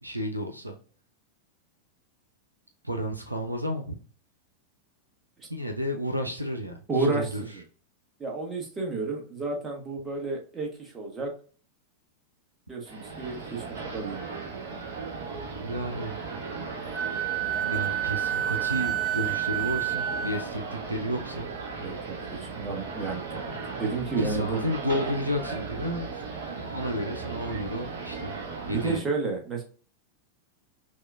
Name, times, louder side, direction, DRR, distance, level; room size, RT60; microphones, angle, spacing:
voice 1, 0.0-0.8 2.8-4.0 5.5-7.4 15.6-16.2 16.5-16.7 17.6-21.5 24.2-28.4 28.7-29.0, equal, 85° right, 4 dB, 0.5 m, -32 dB
voice 2, 6.9-7.6 8.2-11.4 12.7-14.4 21.8-24.6 28.7-29.6, right 3 dB, 20° right, 0 dB, 1.1 m, -31 dB
sound 1, 12.9-29.0, right 4 dB, 60° right, 1.2 m, -37 dB
Wind instrument woodwind instrument, 16.9-20.5, right 11 dB, ahead, 0.4 m, -29 dB
6.0 x 2.3 x 2.4 m, 0.40 s
figure-of-eight pair, 90°, 0 cm